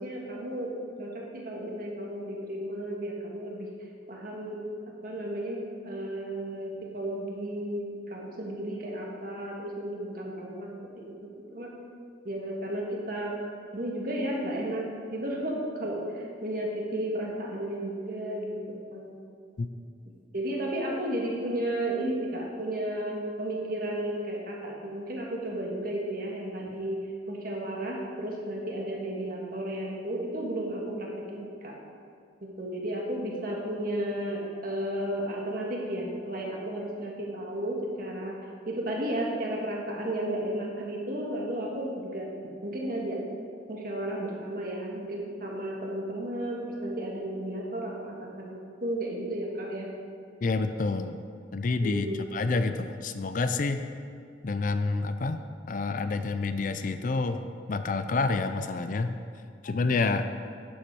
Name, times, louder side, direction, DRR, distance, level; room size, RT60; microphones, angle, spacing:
voice 1, 0.0-3.7 4.1-4.6 5.0-10.7 11.0-11.7 12.2-13.3 13.7-14.8 15.1-19.2 20.3-31.7 32.4-38.4 38.7-42.3 42.6-43.2 43.7-49.9 51.8-52.2, right 1 dB, 50° right, -2 dB, 1.7 m, -33 dB
voice 2, 50.4-51.2 51.5-53.8 54.4-55.4 55.7-57.4 57.7-59.1 59.6-60.3, left 3 dB, 45° left, 9 dB, 0.4 m, -28 dB
11.0 x 7.2 x 4.7 m, 2.3 s
head